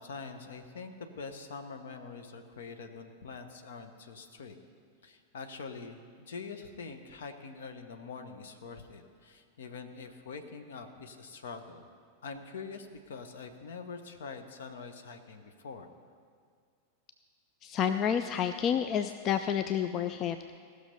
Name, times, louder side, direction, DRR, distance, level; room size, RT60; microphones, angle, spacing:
voice 1, 0.0-4.5 5.0-11.9 12.2-15.9, left 4 dB, 60° left, 7 dB, 0.9 m, -44 dB
voice 2, 17.6-20.6, left 8 dB, 35° left, 9 dB, 0.4 m, -30 dB
17.5 x 6.4 x 5.4 m, 2.2 s
figure-of-eight pair, 90°, 0 cm